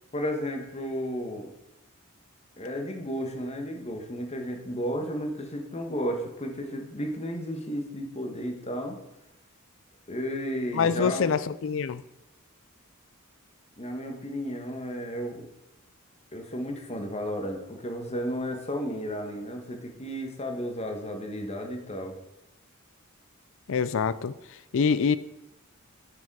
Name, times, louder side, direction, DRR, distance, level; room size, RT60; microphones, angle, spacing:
voice 1, 0.1-1.5 2.6-9.0 10.1-11.4 13.8-15.5 16.3-22.2, equal, 30° left, 3 dB, 1.3 m, -33 dB
voice 2, 10.7-12.0 23.7-25.2, left 6 dB, 65° left, 16 dB, 0.4 m, -25 dB
9.4 x 5.0 x 4.7 m, 0.92 s
head